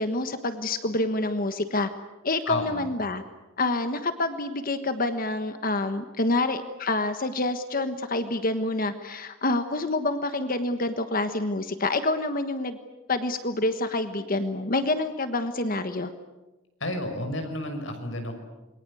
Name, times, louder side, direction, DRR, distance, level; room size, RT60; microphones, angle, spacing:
voice 1, 0.0-1.9 2.2-3.2 3.6-12.8 13.1-16.1, left 2 dB, 45° left, 9 dB, 1.4 m, -27 dB
voice 2, 2.5-2.9 16.8-18.4, left 1 dB, 65° left, 5 dB, 6.2 m, -31 dB
28.0 x 23.0 x 8.5 m, 1.1 s
head